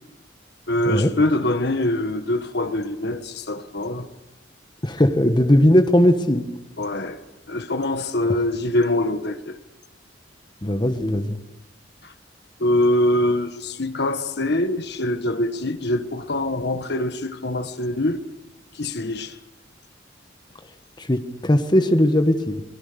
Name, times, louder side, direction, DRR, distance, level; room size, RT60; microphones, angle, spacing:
voice 1, 0.7-4.1 6.8-7.2 7.5-9.6 12.0-12.1 12.6-18.2 18.7-19.4, left 1 dB, 60° left, 1.4 m, -24 dB
voice 2, 4.8-6.5 10.6-11.4 21.0-22.6, left 1 dB, 25° left, 1.2 m, -18 dB
24.5 x 20.5 x 6.8 m
head